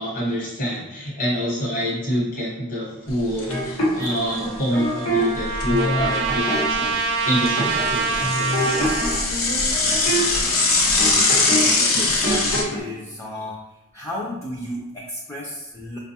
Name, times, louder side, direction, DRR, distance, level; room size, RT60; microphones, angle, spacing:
voice 1, 0.0-8.8, equal, 40° left, -5 dB, 1.0 m, -26 dB
Bicycle / Mechanisms, 3.1-3.7 4.1-4.2 4.4-4.5 5.2-6.3 6.7-12.6, left 3 dB, 65° left, 0.6 m, -22 dB
sound 1, 3.5-5.2 5.7-6.9 7.6-7.9 8.2-11.7 11.9-12.8, equal, 85° left, 1.1 m, -26 dB
Trumpet, 4.1-9.2, right 4 dB, 50° right, 0.4 m, -26 dB
voice 2, 9.8-13.6 13.9-16.0, left 1 dB, 10° left, -5 dB, 0.4 m, -35 dB
4.5 x 2.2 x 2.8 m, 1.0 s
head